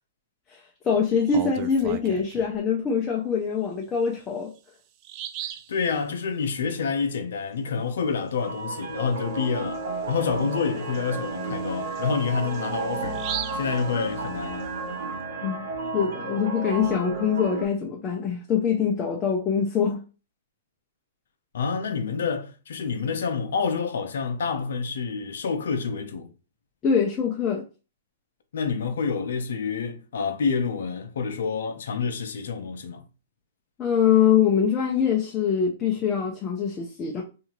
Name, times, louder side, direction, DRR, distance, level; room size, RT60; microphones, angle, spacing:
voice 1, 0.8-4.5 15.4-20.0 26.8-27.6 33.8-37.2, left 7 dB, 20° left, 0.5 m, -24 dB
Bird vocalization bird call bird song, 1.1-2.6 4.0-4.1 4.6-4.7 5.0-5.7 9.2-9.4 9.7-9.8 10.4-14.6, right 11 dB, 35° right, 0.3 m, -38 dB
voice 2, 5.7-9.8 10.1-13.2 13.5-14.7 21.5-26.3 28.5-33.0, left 5 dB, 75° left, 0.6 m, -28 dB
sound 1, 8.4-17.7, right 3 dB, 80° right, 1.0 m, -32 dB
2.7 x 2.4 x 2.9 m
hypercardioid pair, 140°, 0 cm